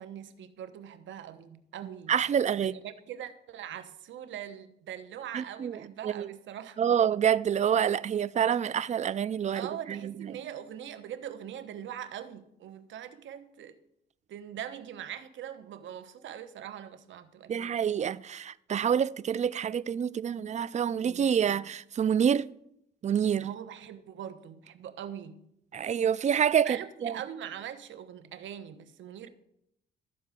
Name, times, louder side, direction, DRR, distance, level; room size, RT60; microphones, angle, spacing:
voice 1, 0.0-2.1 2.6-6.8 9.5-13.8 14.3-17.8 21.0-21.6 23.4-25.4 26.6-29.3, right 10 dB, 70° right, 1.0 m, -42 dB
voice 2, 2.1-2.7 5.3-6.3 6.8-10.4 17.5-22.5 23.0-23.5 25.7-27.1, right 8 dB, 35° right, 0.4 m, -27 dB
13.0 x 4.6 x 7.5 m
cardioid pair, 90°, 20 cm